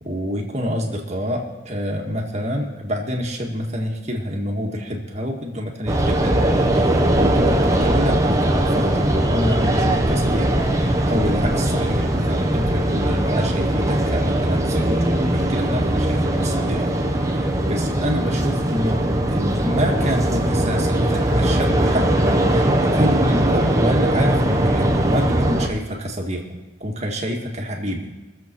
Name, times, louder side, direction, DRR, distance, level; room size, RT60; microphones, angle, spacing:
voice 1, 0.0-19.0 19.3-26.4 26.8-28.1, equal, 35° right, 0 dB, 1.8 m, -27 dB
sound 1, 5.9-25.7, right 1 dB, 15° right, 1.2 m, -20 dB
22.5 x 7.6 x 4.5 m, 1.2 s
head